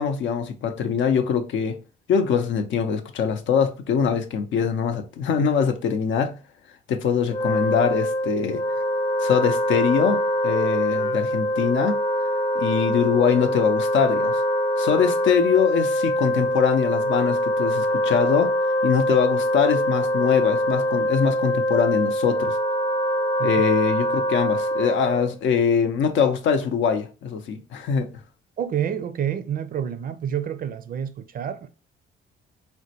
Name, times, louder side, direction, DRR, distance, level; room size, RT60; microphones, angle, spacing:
voice 1, 0.0-1.8 2.1-6.4 6.9-8.6 9.2-12.0 12.5-14.4 14.8-18.5 18.8-22.6 23.4-28.1, left 7 dB, 70° left, 0.6 m, -23 dB
Wind instrument woodwind instrument, 7.2-25.4, equal, 25° left, 0.5 m, -24 dB
voice 2, 28.6-31.7, right 9 dB, 45° right, 0.4 m, -28 dB
3.7 x 2.2 x 2.7 m
cardioid pair, 90°, 20 cm